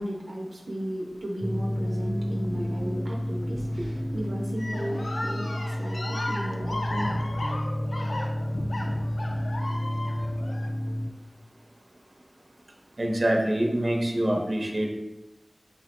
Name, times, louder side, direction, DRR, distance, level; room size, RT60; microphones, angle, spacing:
voice 1, 0.0-7.1, equal, 80° right, -2 dB, 0.6 m, -35 dB
sound 1, 1.4-11.1, equal, 5° right, 0.3 m, -30 dB
sound 2, 4.6-10.7, left 1 dB, 75° left, 0.5 m, -35 dB
voice 2, 13.0-14.9, right 1 dB, 50° right, -1 dB, 0.8 m, -25 dB
5.7 x 2.1 x 4.2 m, 0.99 s
wide cardioid pair, 50°, 0 cm